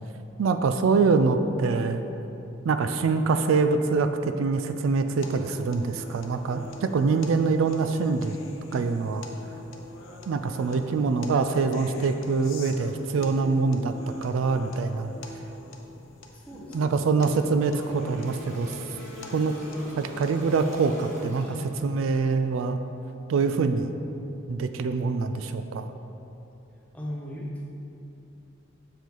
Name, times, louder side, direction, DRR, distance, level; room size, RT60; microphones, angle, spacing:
voice 1, 0.4-2.0 2.6-8.4 8.7-9.3 10.3-13.9 14.2-15.1 16.7-18.8 19.3-19.5 20.0-21.4 21.8-22.8 23.3-23.9 24.5-25.9, right 4 dB, 85° right, 9 dB, 0.3 m, -24 dB
sound 1, 5.2-21.2, left 1 dB, 85° left, 0.6 m, -44 dB
voice 2, 16.5-17.5 21.4-21.7 26.9-27.7, equal, 5° left, -4 dB, 0.8 m, -37 dB
Toilet flush, 17.6-21.9, equal, 35° right, 1.0 m, -46 dB
6.7 x 4.9 x 3.9 m, 3.0 s
head